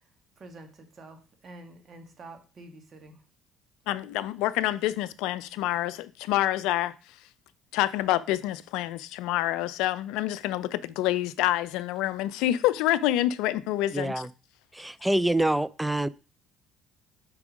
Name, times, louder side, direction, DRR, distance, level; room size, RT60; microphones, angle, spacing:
voice 1, 0.4-3.2, right 2 dB, 45° right, 1.6 m, -48 dB
voice 2, 3.9-6.9 7.7-14.2, left 14 dB, 70° left, 0.4 m, -27 dB
voice 3, 13.9-14.3 14.7-16.1, right 1 dB, 5° right, 0.4 m, -26 dB
4.8 x 4.6 x 5.0 m
hypercardioid pair, 60°, 0 cm